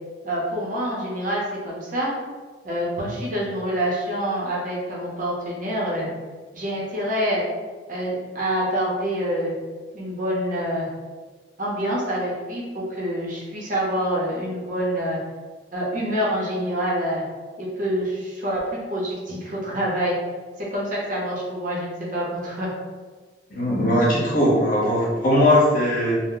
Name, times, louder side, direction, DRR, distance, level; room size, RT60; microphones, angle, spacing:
voice 1, 0.2-2.1 2.6-6.1 6.5-7.4 7.9-9.5 9.9-10.9 11.6-15.2 15.7-17.2 17.6-20.1 20.7-22.7, equal, 45° right, -4 dB, 0.8 m, -26 dB
voice 2, 23.5-26.2, left 1 dB, 50° left, -6 dB, 0.9 m, -19 dB
2.7 x 2.1 x 3.7 m, 1.4 s
head